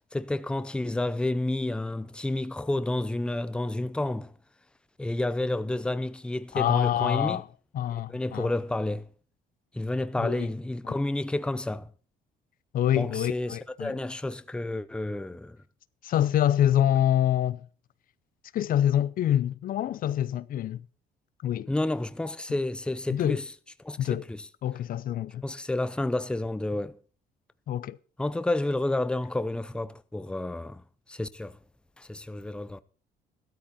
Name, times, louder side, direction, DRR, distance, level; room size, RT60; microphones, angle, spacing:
voice 1, 0.1-4.3 5.0-7.4 7.9-9.1 9.7-11.9 13.0-15.6 21.7-23.5 23.8-24.5 25.4-27.0 28.2-30.8 31.1-31.6 32.0-32.8, left 2 dB, 5° left, 0.6 m, -30 dB
voice 2, 6.5-7.5 7.7-8.5 10.2-10.5 10.8-11.0 12.7-14.0 16.0-17.6 18.5-20.8 21.4-21.7 23.1-23.4 24.0-24.3 24.6-25.4 27.7-28.0, left 11 dB, 55° left, 0.6 m, -26 dB
14.5 x 13.0 x 4.2 m
cardioid pair, 110°, 17 cm